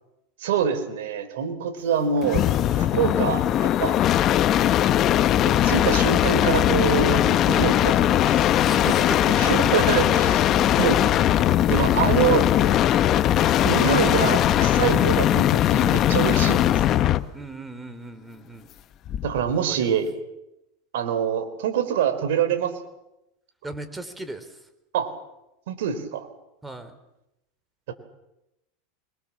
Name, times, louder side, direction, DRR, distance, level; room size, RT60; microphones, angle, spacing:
voice 1, 0.4-2.5 2.8-4.0 5.4-8.6 9.3-10.5 10.8-11.0 11.7-12.4 13.6-16.8 19.2-20.1 20.9-22.7 24.9-25.1 25.7-26.3 27.9-28.0, right 8 dB, 75° right, 8 dB, 4.1 m, -25 dB
sound 1, 2.2-17.3 19.0-19.5, left 11 dB, 40° left, 1.1 m, -20 dB
voice 2, 8.6-9.4 17.3-18.7 19.7-20.0 23.6-24.4 26.6-26.9, right 2 dB, 10° right, 10 dB, 3.8 m, -37 dB
25.5 x 23.0 x 7.4 m, 0.90 s
supercardioid pair, 120°, 0 cm